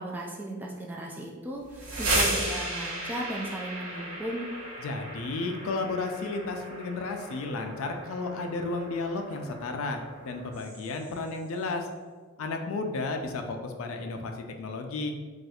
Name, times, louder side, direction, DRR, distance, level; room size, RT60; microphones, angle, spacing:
voice 1, 0.0-4.5, right 1 dB, 10° right, -2 dB, 0.3 m, -36 dB
sound 1, 1.6-11.3, right 1 dB, 85° right, 0.9 m, -35 dB
voice 2, 4.8-11.9 12.4-15.1, left 3 dB, 75° left, 5 dB, 0.4 m, -33 dB
4.2 x 2.4 x 2.3 m, 1.4 s
head